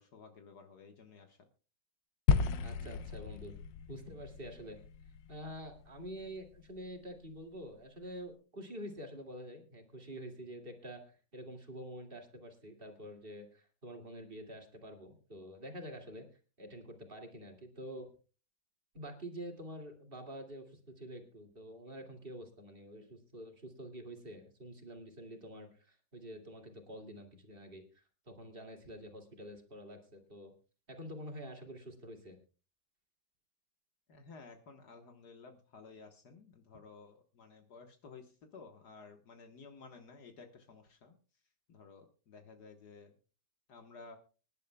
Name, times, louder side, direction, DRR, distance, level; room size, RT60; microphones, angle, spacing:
voice 1, 0.0-1.4 34.1-41.2 41.7-43.1 43.7-44.2, left 4 dB, 65° left, 5 dB, 1.8 m, -54 dB
sound 1, 2.3-6.7, left 6 dB, 85° left, 1.5 m, -34 dB
voice 2, 2.6-3.5 3.9-4.8 5.3-16.3 16.6-18.1 18.9-30.5 30.9-32.4, equal, 30° right, 4 dB, 2.5 m, -47 dB
25.0 x 11.0 x 2.2 m, 0.34 s
omnidirectional pair, 1.9 m